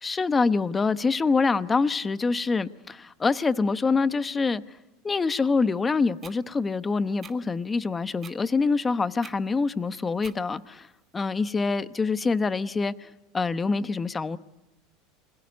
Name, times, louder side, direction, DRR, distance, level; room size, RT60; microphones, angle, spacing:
voice 1, 0.0-4.6 5.0-10.9 11.1-13.1 13.3-14.4, left 4 dB, 15° left, 0.9 m, -25 dB
sound 1, 6.2-6.4 7.2-7.4 8.2-8.4 9.2-9.4 10.2-10.4, right 7 dB, 25° right, 1.7 m, -44 dB
27.5 x 22.0 x 9.5 m
supercardioid pair, 120°, 0 cm